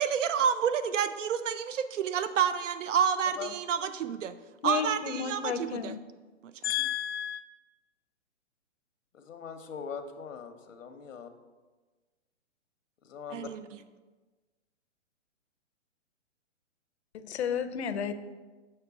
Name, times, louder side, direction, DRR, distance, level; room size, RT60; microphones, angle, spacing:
voice 1, 0.0-4.4 4.6-5.9 6.4-6.7 13.3-13.7, right 8 dB, 75° right, 12 dB, 0.6 m, -29 dB
voice 2, 4.6-6.0 6.6-7.4 17.1-18.1, left 8 dB, 60° left, 11 dB, 0.6 m, -32 dB
voice 3, 9.1-11.3 13.0-13.5, left 6 dB, 90° left, 8 dB, 0.9 m, -41 dB
6.6 x 3.3 x 5.9 m, 1.3 s
hypercardioid pair, 160°, 38 cm